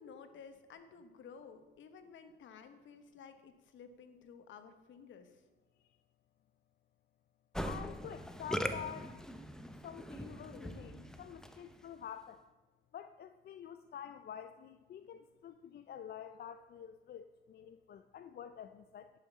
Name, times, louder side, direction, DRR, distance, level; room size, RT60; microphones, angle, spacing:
voice 1, 0.0-5.4, left 6 dB, 70° left, 9 dB, 1.1 m, -54 dB
Musical instrument, 7.5-11.8, equal, 5° left, 0.7 m, -41 dB
voice 2, 7.6-9.2 9.8-12.4 12.9-19.1, left 9 dB, 55° left, 9 dB, 0.5 m, -48 dB
11.0 x 5.8 x 6.0 m, 1.2 s
cardioid pair, 90°, 20 cm